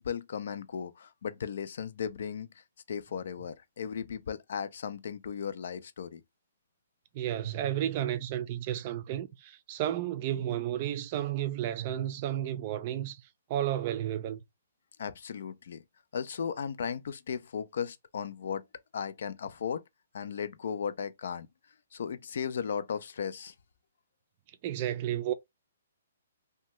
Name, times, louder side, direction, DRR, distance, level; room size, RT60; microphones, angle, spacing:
voice 1, 0.0-2.5 2.9-6.2 15.0-15.8 16.1-18.6 18.9-19.8 20.1-21.5 21.9-23.5, left 7 dB, 65° left, 0.4 m, -36 dB
voice 2, 7.1-13.2 13.5-14.4 24.6-25.3, right 11 dB, 40° right, 0.4 m, -32 dB
2.7 x 2.2 x 3.0 m
hypercardioid pair, 140°, 0 cm